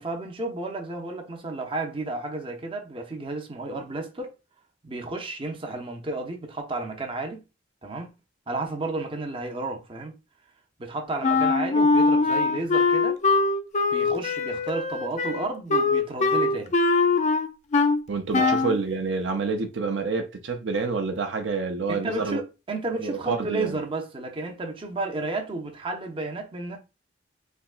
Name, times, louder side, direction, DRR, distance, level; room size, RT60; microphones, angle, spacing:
voice 1, 0.0-4.3 4.8-7.4 7.8-8.1 8.5-10.2 10.8-13.2 13.9-16.7 18.4-18.6 21.9-26.8, right 2 dB, 30° right, 0.5 m, -32 dB
Wind instrument woodwind instrument, 11.2-18.0 18.3-18.8, left 3 dB, 40° left, 0.4 m, -22 dB
voice 2, 18.1-22.4 22.9-23.8, right 4 dB, 75° right, 0.5 m, -28 dB
3.4 x 2.8 x 2.4 m
head